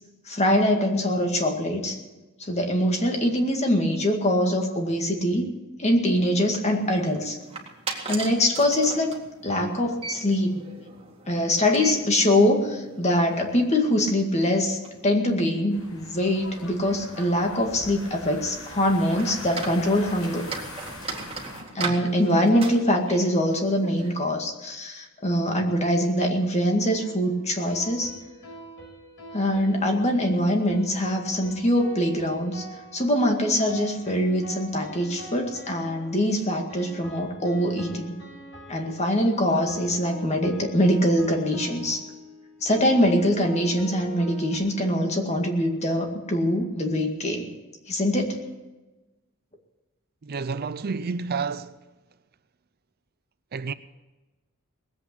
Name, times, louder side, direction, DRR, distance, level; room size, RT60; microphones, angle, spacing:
voice 1, 0.3-2.0 2.4-5.5 5.8-7.4 8.1-9.1 9.4-10.7 11.3-20.5 21.7-28.2 29.3-32.7 32.9-38.1 38.7-42.0 42.6-47.5 47.9-48.4, left 1 dB, 30° left, 2.1 m, -23 dB
sound 1, 6.1-24.1, right 4 dB, 25° right, 2.1 m, -40 dB
sound 2, 15.7-21.6, left 1 dB, 90° left, 4.7 m, -42 dB
sound 3, 26.9-44.6, equal, 65° left, 6.5 m, -44 dB
voice 2, 50.2-51.8 53.5-53.7, right 5 dB, 45° right, 0.5 m, -30 dB
20.0 x 8.4 x 8.3 m
head